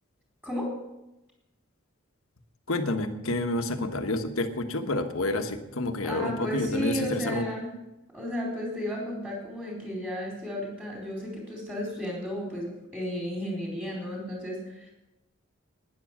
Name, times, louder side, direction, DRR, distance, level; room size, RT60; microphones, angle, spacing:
voice 1, 2.7-7.5, left 2 dB, 75° left, 7 dB, 1.3 m, -29 dB
voice 2, 6.0-7.6 8.1-14.9, equal, 10° right, -2 dB, 4.4 m, -33 dB
12.0 x 10.0 x 7.4 m, 0.94 s
head